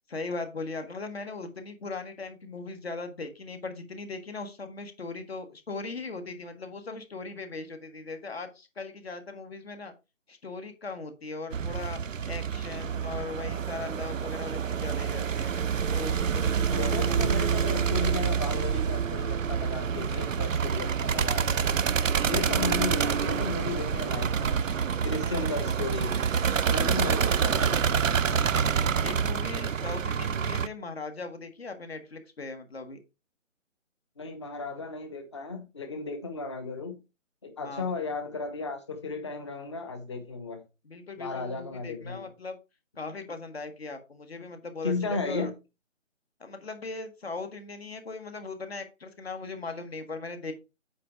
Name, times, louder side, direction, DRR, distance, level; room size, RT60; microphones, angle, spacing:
voice 1, 0.1-9.9 10.3-12.0 12.3-17.4 28.3-28.7 29.0-33.0 37.6-37.9 40.8-42.6 43.0-45.5 46.4-50.5, left 3 dB, 50° left, 1.6 m, -39 dB
sound 1, 11.5-30.7, right 7 dB, 75° right, 0.6 m, -27 dB
voice 2, 16.7-21.5 22.2-24.6 25.0-26.2 26.7-27.8 34.2-37.0 37.4-40.6 41.2-42.3 44.8-45.5, left 3 dB, 20° left, 0.9 m, -34 dB
8.4 x 5.1 x 4.4 m
figure-of-eight pair, 155°, 39 cm